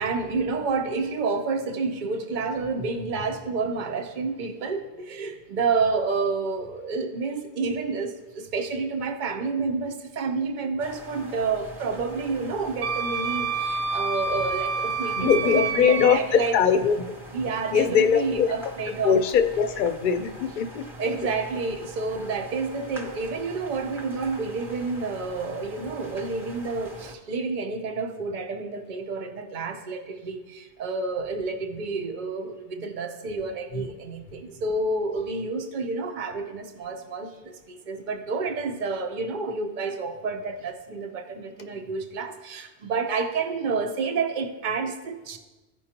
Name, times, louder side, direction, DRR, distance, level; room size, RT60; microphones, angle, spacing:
voice 1, 0.0-16.6 17.3-19.2 21.0-45.4, right 4 dB, 50° right, 3 dB, 0.9 m, -29 dB
sound 1, 10.8-27.1, right 1 dB, ahead, 1.0 m, -43 dB
Wind instrument woodwind instrument, 12.8-16.2, right 4 dB, 80° right, 0.9 m, -28 dB
voice 2, 15.2-17.0 17.7-18.7 19.0-20.8, left 7 dB, 55° left, 9 dB, 0.7 m, -21 dB
15.0 x 5.4 x 2.9 m, 1.2 s
omnidirectional pair, 1.2 m